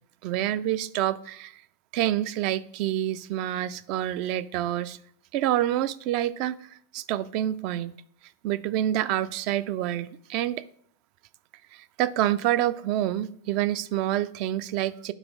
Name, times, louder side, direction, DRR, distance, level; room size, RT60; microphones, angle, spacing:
voice 1, 0.2-1.6 1.9-5.0 5.3-6.6 6.9-7.9 8.4-10.6 11.7-15.1, right 12 dB, 45° right, 16 dB, 0.3 m, -27 dB
9.0 x 3.0 x 3.6 m, 0.63 s
figure-of-eight pair, 90°, 0 cm